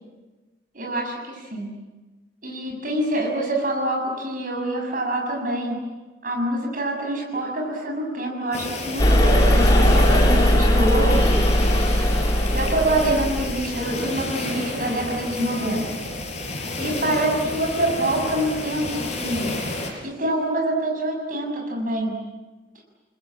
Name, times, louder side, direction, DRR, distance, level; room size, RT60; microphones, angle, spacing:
voice 1, 0.7-1.7 2.4-5.8 6.2-11.5 12.5-15.9 16.8-19.6 20.0-22.1, right 1 dB, 50° right, 2 dB, 6.9 m, -26 dB
sound 1, 8.5-19.9, left 2 dB, 40° left, 6.3 m, -31 dB
sound 2, 9.0-13.5, left 1 dB, 25° left, 3.8 m, -18 dB
29.0 x 20.5 x 8.9 m, 1.2 s
head